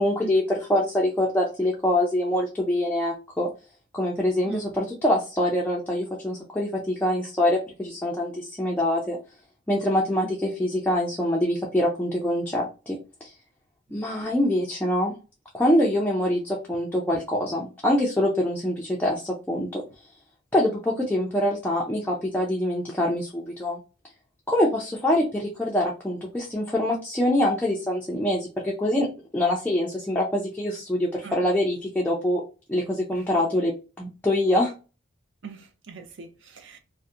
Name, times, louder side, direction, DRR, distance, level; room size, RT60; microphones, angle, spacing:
voice 1, 0.0-3.5 3.9-9.2 9.7-13.3 13.9-15.1 15.5-19.8 20.5-23.8 24.5-29.1 29.3-32.4 32.7-34.7, left 1 dB, 10° left, 0.4 m, -24 dB
voice 2, 33.1-33.5 35.4-36.8, right 4 dB, 60° right, 0.5 m, -40 dB
2.7 x 2.1 x 2.3 m
head